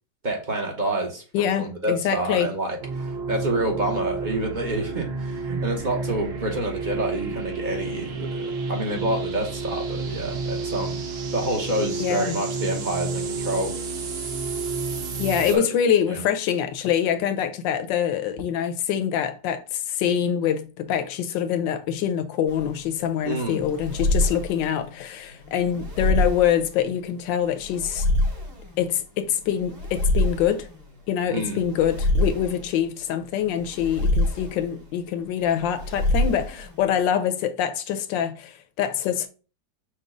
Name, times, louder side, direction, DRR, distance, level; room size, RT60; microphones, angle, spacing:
voice 1, 0.2-13.7 15.5-15.7 16.1-16.2 23.2-23.6 31.3-31.6, right 1 dB, 35° right, 0.8 m, -28 dB
voice 2, 1.3-2.5 12.0-12.4 15.2-28.0 28.8-30.7 31.1-39.3, left 9 dB, 75° left, 1.3 m, -25 dB
sound 1, 2.8-15.6, right 4 dB, 90° right, 0.5 m, -30 dB
sound 2, 22.5-37.0, left 1 dB, 60° right, 2.8 m, -27 dB
6.1 x 2.3 x 3.7 m
omnidirectional pair, 2.1 m